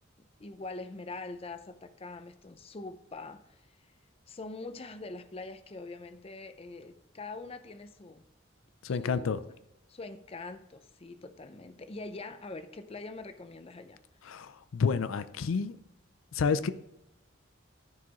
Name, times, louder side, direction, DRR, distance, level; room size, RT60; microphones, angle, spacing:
voice 1, 0.2-3.8 4.3-8.2 8.9-9.5 9.9-14.0, left 3 dB, 30° left, 10 dB, 0.5 m, -44 dB
voice 2, 8.8-9.4 14.2-15.8 16.3-16.7, left 5 dB, 90° left, 14 dB, 0.5 m, -29 dB
13.5 x 4.9 x 3.0 m, 0.88 s
head